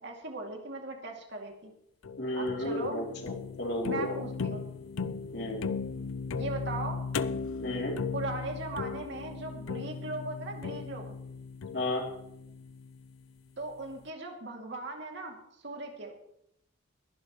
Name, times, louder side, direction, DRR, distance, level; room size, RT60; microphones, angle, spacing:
voice 1, 0.0-1.7 2.3-3.1 3.8-4.7 6.4-7.0 8.1-11.1 13.6-16.2, right 2 dB, 60° right, 2 dB, 2.6 m, -38 dB
sound 1, 2.0-13.2, left 5 dB, 85° left, 0.5 m, -37 dB
voice 2, 2.2-4.1 5.3-5.6 7.6-7.9 11.7-12.0, left 1 dB, 55° left, -1 dB, 3.1 m, -33 dB
22.0 x 11.0 x 3.1 m, 0.77 s
head